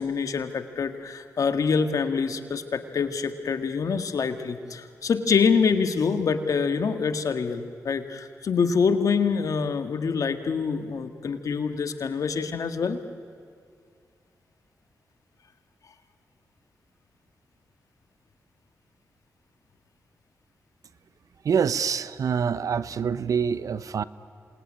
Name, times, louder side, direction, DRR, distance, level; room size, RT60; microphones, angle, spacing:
voice 1, 0.0-13.0, left 5 dB, 70° left, 8 dB, 1.8 m, -25 dB
voice 2, 21.4-24.0, right 7 dB, 70° right, 16 dB, 0.8 m, -25 dB
27.5 x 20.5 x 9.9 m, 2.2 s
supercardioid pair, 45°, 6 cm